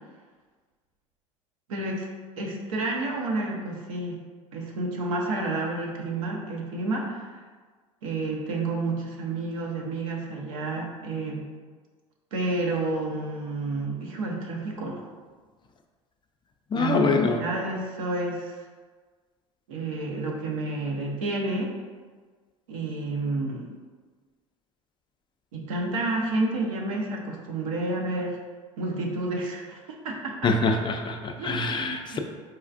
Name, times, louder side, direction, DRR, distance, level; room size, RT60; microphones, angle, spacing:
voice 1, 1.7-2.1 2.4-4.2 4.5-7.3 8.0-11.5 12.3-15.1 16.7-18.5 19.7-21.7 22.7-23.7 25.5-28.4 28.8-30.5 31.4-32.2, right 2 dB, 80° right, -1 dB, 0.7 m, -30 dB
voice 2, 16.7-17.4 30.4-32.2, left 4 dB, 30° left, 4 dB, 0.4 m, -24 dB
4.3 x 2.3 x 2.5 m, 1.5 s
hypercardioid pair, 70°, 17 cm